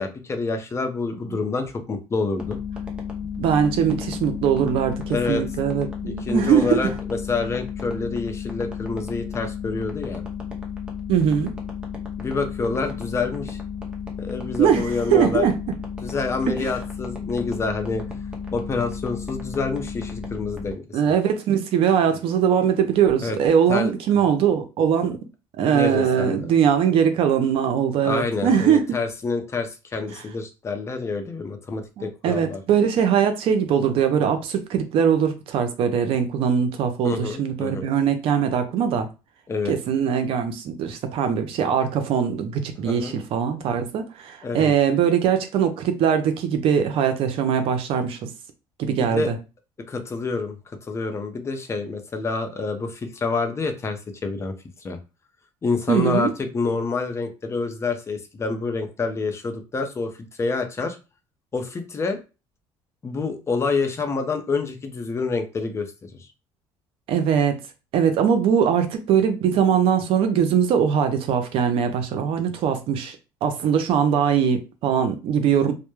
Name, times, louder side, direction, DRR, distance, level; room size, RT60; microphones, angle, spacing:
voice 1, 0.0-2.6 5.1-5.4 6.1-10.2 12.2-13.6 14.2-15.5 16.0-18.2 18.5-21.0 23.2-23.4 23.7-23.9 25.7-26.5 28.0-32.6 37.0-37.8 39.5-39.7 42.8-43.1 44.4-44.7 49.0-49.3 49.9-50.6 50.8-54.5 54.8-55.0 55.6-60.1 60.4-61.0 61.5-62.2 63.0-66.3, left 4 dB, 25° left, 0.5 m, -27 dB
sound 1, 2.4-20.7, left 6 dB, 10° right, 0.7 m, -33 dB
voice 2, 3.4-6.9 11.1-11.5 14.6-15.5 16.5-16.7 20.9-25.2 25.6-28.8 32.0-39.1 39.7-48.3 48.8-49.4 55.9-56.3 67.1-67.6 67.9-73.2 73.4-75.7, right 8 dB, 65° right, 0.5 m, -21 dB
2.1 x 2.0 x 3.0 m
cardioid pair, 110°, 10 cm